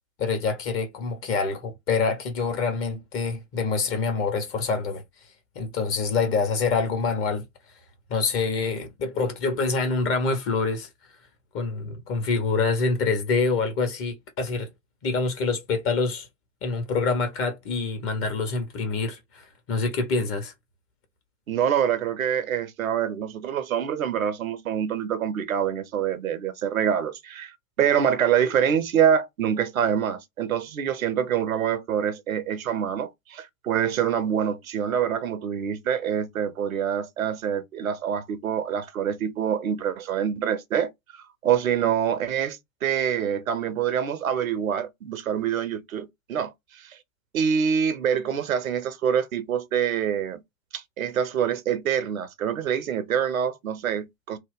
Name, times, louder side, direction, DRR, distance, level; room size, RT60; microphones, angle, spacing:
voice 1, 0.2-5.0 5.5-7.4 8.1-10.9 11.5-14.7 15.0-16.3 16.6-19.4 19.7-20.5, left 4 dB, 30° left, 1.1 m, -26 dB
voice 2, 21.5-27.5 27.8-47.0 47.3-50.4 50.7-54.4, right 8 dB, 75° right, 0.7 m, -26 dB
2.8 x 2.1 x 3.6 m
figure-of-eight pair, 95°, 41 cm